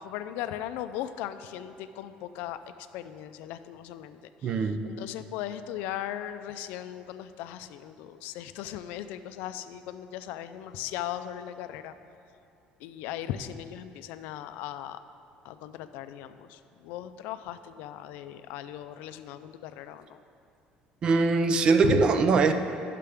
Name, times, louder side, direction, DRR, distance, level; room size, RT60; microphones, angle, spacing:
voice 1, 0.0-2.6 2.9-11.9 12.8-15.0 15.4-20.2 21.8-22.0, left 11 dB, 80° left, 11 dB, 0.3 m, -37 dB
voice 2, 4.4-4.8 21.0-22.5, right 4 dB, 30° right, 9 dB, 0.3 m, -22 dB
9.9 x 6.6 x 3.4 m, 2.6 s
cardioid pair, 175°, 3 cm